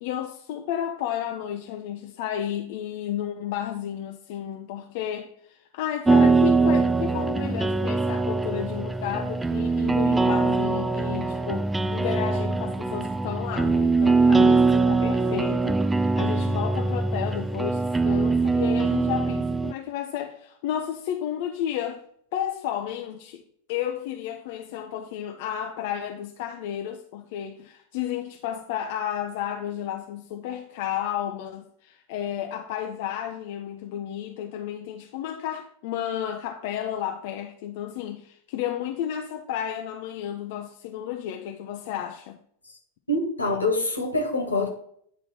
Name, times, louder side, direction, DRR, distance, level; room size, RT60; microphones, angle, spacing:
voice 1, 0.0-22.0 22.3-23.4 23.7-42.4, left 10 dB, 50° left, 0.6 m, -32 dB
sound 1, 6.1-19.7, right 3 dB, 10° right, 0.3 m, -22 dB
voice 2, 43.1-44.7, left 2 dB, 80° left, 1.7 m, -25 dB
9.4 x 4.0 x 4.3 m
figure-of-eight pair, 90°, 0 cm